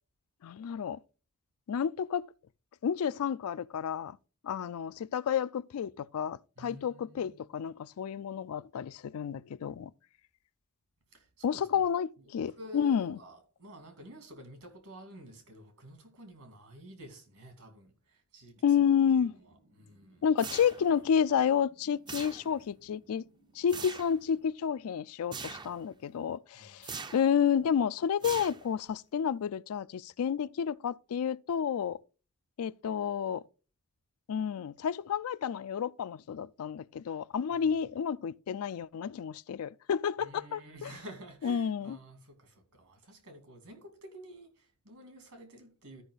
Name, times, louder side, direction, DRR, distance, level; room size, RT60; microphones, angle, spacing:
voice 1, 0.4-1.0 1.7-2.2 2.8-4.2 4.4-9.9 11.4-13.2 18.6-19.3 20.2-23.2 23.6-32.0 32.6-33.4 34.3-40.9 41.4-42.0, left 7 dB, 70° left, 0.3 m, -30 dB
voice 2, 6.6-7.4 11.1-11.8 12.2-18.8 19.1-20.2 26.5-26.9 37.5-37.6 40.2-46.0, equal, 75° right, 2.7 m, -51 dB
sound 1, 18.5-24.4, right 1 dB, 90° right, 3.8 m, -65 dB
sound 2, 20.4-21.1 22.1-22.7 23.7-24.2 25.3-25.8 26.8-27.4 28.2-28.9, right 5 dB, 20° right, 0.4 m, -42 dB
13.0 x 5.4 x 3.9 m
head